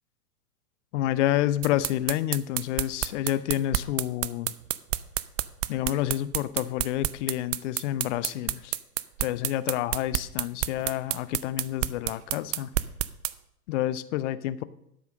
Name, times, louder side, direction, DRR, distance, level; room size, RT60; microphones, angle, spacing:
voice 1, 0.9-4.5 5.7-8.7 9.2-12.7 13.7-14.6, left 13 dB, 45° left, 16 dB, 0.7 m, -29 dB
sound 1, 1.6-13.3, right 15 dB, 50° right, 0.6 m, -29 dB
12.5 x 5.7 x 6.4 m, 0.76 s
hypercardioid pair, 110°, 49 cm